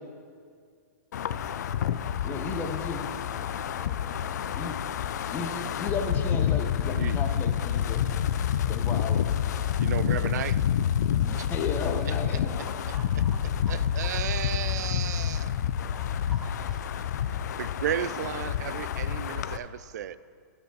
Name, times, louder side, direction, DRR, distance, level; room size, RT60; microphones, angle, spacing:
Wind, 1.1-19.6, left 9 dB, 70° left, 0.4 m, -28 dB
voice 1, 2.2-3.1 4.5-4.7 5.3-8.0 8.7-9.2 11.2-12.7, left 4 dB, 20° left, 5 dB, 0.9 m, -34 dB
voice 2, 3.3-4.4 12.6-14.1 15.6-17.2, right 1 dB, 5° right, 0 dB, 1.1 m, -49 dB
voice 3, 9.8-10.6 11.4-11.5 13.7-15.5 17.6-20.2, right 10 dB, 70° right, 16 dB, 0.4 m, -33 dB
11.0 x 5.1 x 6.3 m, 2.2 s
hypercardioid pair, 140°, 9 cm